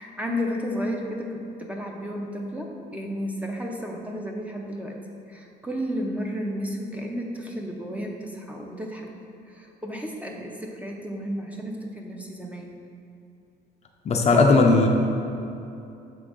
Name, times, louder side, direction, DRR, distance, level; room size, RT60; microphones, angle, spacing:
voice 1, 0.0-5.0 5.3-9.1 9.4-12.8, equal, 10° right, 0 dB, 0.6 m, -32 dB
voice 2, 14.1-14.9, left 3 dB, 40° left, 2 dB, 0.5 m, -17 dB
6.9 x 3.8 x 3.7 m, 2.7 s
cardioid pair, 110°, 17 cm